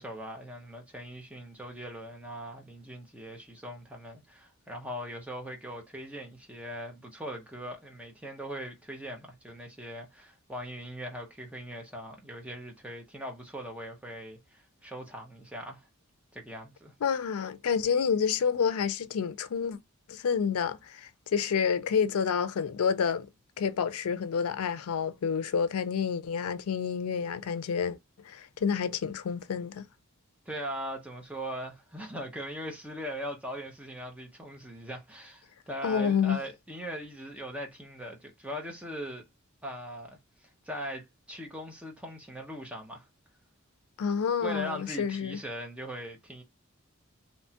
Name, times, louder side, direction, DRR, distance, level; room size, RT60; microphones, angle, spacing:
voice 1, 0.0-15.9 16.3-16.9 30.5-39.3 39.6-43.1 44.4-46.4, equal, 5° right, 0.6 m, -40 dB
voice 2, 17.0-19.8 20.1-23.3 23.6-28.0 28.3-29.9 35.8-36.4 44.0-45.4, left 6 dB, 85° left, 0.4 m, -29 dB
2.9 x 2.2 x 2.7 m
head